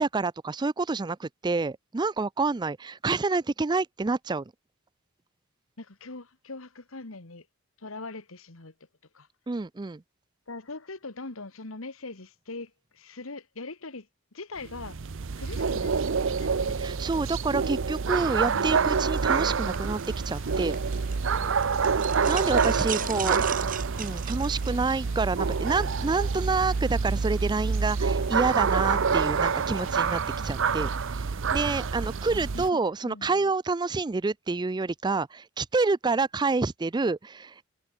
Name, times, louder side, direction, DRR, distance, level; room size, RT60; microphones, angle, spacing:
voice 1, 0.0-4.4 9.5-10.0 16.8-20.8 22.3-23.4 24.0-37.7, right 3 dB, 20° right, 0.4 m, -28 dB
voice 2, 5.8-7.5 7.8-8.7 9.1-9.3 10.5-15.0 15.4-16.8 18.4-18.8 19.4-19.9 22.2-24.2 25.0-25.3 32.3-33.5, left 3 dB, 75° left, 1.8 m, -42 dB
sound 1, 14.6-32.7, right 5 dB, 65° right, 0.6 m, -27 dB
sound 2, 19.1-21.3 21.6-24.7, right 10 dB, 40° right, 1.6 m, -37 dB
sound 3, 19.9-31.2, left 6 dB, 45° left, 7.4 m, -55 dB
head